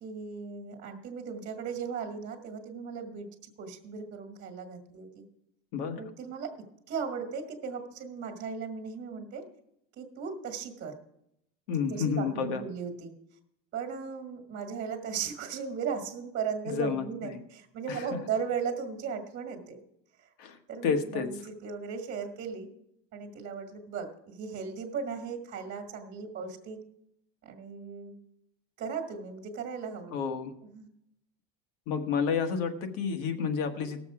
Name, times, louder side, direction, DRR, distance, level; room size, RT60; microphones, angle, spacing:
voice 1, 0.0-3.3 3.6-5.2 6.0-6.5 6.9-9.4 10.0-11.0 11.8-13.1 13.7-19.8 20.2-20.3 20.7-22.7 23.1-26.8 27.4-28.1 28.8-30.1 30.7-30.9, right 6 dB, 40° right, 2 dB, 1.5 m, -37 dB
voice 2, 11.7-12.6 16.7-17.4 17.9-18.1 20.4-21.3 30.1-30.5 31.9-34.0, left 6 dB, 70° left, 6 dB, 1.5 m, -30 dB
18.0 x 7.0 x 4.8 m, 0.78 s
cardioid pair, 145°, 29 cm